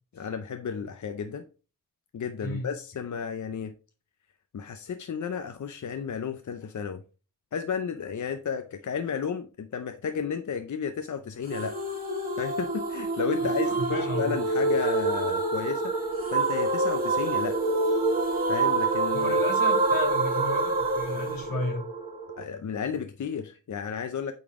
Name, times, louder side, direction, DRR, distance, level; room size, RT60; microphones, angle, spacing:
voice 1, 0.1-1.4 2.1-3.7 4.5-7.0 7.5-11.8 12.4-15.9 16.3-17.6 18.5-19.3 22.4-24.3, left 6 dB, 60° left, 0.6 m, -33 dB
sound 1, 11.5-22.4, right 3 dB, 25° right, 3.0 m, -26 dB
voice 2, 13.4-14.4 19.1-21.8, left 2 dB, 85° left, 2.3 m, -33 dB
8.4 x 4.1 x 3.6 m
wide cardioid pair, 110°, 33 cm